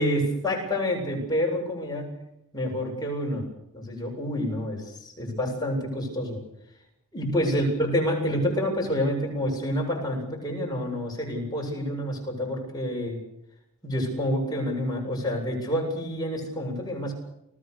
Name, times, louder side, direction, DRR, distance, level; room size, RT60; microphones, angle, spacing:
voice 1, 0.0-2.2 2.5-3.4 3.7-6.4 7.1-13.2 13.8-17.1, equal, 20° left, 0 dB, 8.0 m, -28 dB
29.5 x 19.5 x 6.9 m, 0.81 s
head